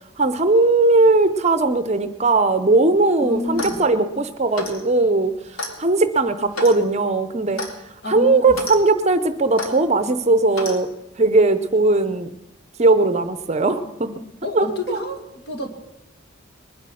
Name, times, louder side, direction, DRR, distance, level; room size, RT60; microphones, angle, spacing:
voice 1, 0.2-5.3 5.8-7.6 8.1-10.9 11.2-12.3 12.8-14.1 14.5-15.0, right 2 dB, 30° right, 11 dB, 0.7 m, -18 dB
voice 2, 3.2-3.8 8.0-8.6 14.4-15.7, left 2 dB, 50° left, 5 dB, 2.0 m, -29 dB
Clock, 3.4-3.9 4.5-4.8 5.6-5.8 6.5-6.8 7.6-7.7 8.5-8.8 9.6-9.7 10.5-10.8, left 2 dB, 80° left, 2.3 m, -30 dB
21.0 x 10.0 x 6.3 m, 0.91 s
head